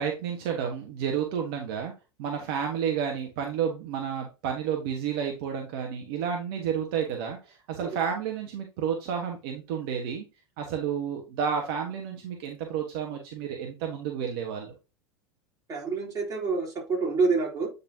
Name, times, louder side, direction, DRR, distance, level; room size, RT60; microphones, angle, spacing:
voice 1, 0.0-1.9 2.2-10.2 10.6-14.7, right 7 dB, 60° right, 2 dB, 1.4 m, -31 dB
voice 2, 15.7-17.7, right 4 dB, 25° right, -2 dB, 4.0 m, -27 dB
8.7 x 4.1 x 2.8 m, 0.29 s
hypercardioid pair, 90°, 13 cm